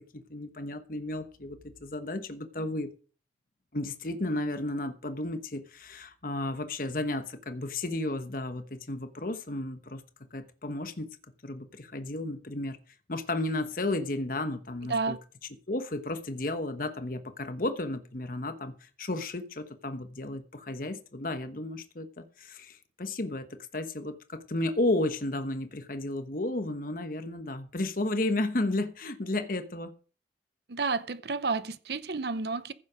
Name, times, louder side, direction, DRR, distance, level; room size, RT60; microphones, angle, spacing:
voice 1, 0.0-2.9 3.7-10.0 10.3-11.1 11.4-12.8 13.1-15.2 15.7-29.9, left 2 dB, 50° left, 1.1 m, -33 dB
voice 2, 30.7-32.7, right 4 dB, 65° right, 0.7 m, -31 dB
15.0 x 7.4 x 5.0 m
head